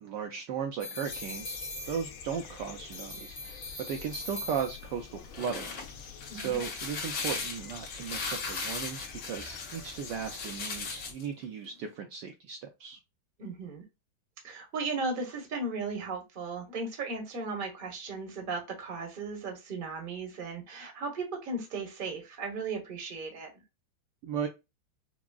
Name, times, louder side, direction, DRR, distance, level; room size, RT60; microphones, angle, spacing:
voice 1, 0.0-5.7 6.3-13.0 24.2-24.5, right 7 dB, 75° right, 1.1 m, -36 dB
sound 1, 0.8-2.5 2.9-5.1, left 2 dB, 40° left, 0.8 m, -42 dB
sound 2, 1.0-11.1, left 7 dB, 80° left, 1.6 m, -47 dB
sound 3, 5.1-11.2, left 4 dB, 65° left, 1.9 m, -38 dB
voice 2, 13.4-13.8 14.4-23.5, right 3 dB, 35° right, 0.9 m, -36 dB
6.0 x 2.0 x 2.3 m
omnidirectional pair, 2.2 m